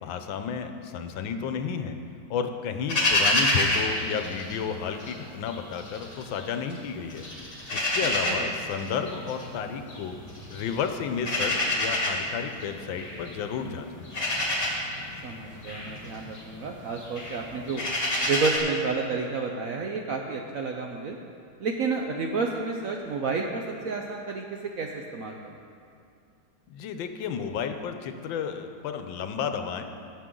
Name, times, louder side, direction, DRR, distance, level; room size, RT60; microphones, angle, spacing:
voice 1, 0.0-2.0 2.3-7.2 7.7-10.1 10.5-13.9 26.7-29.9, left 7 dB, 80° left, 7 dB, 1.4 m, -32 dB
sound 1, 2.9-5.1 5.5-6.8 7.1-18.6, left 1 dB, 30° left, 1.9 m, -28 dB
voice 2, 8.0-8.5 15.2-17.8 18.2-21.2 21.6-25.4, right 4 dB, 65° right, 1 dB, 0.8 m, -30 dB
18.0 x 6.9 x 3.8 m, 2.4 s
omnidirectional pair, 2.1 m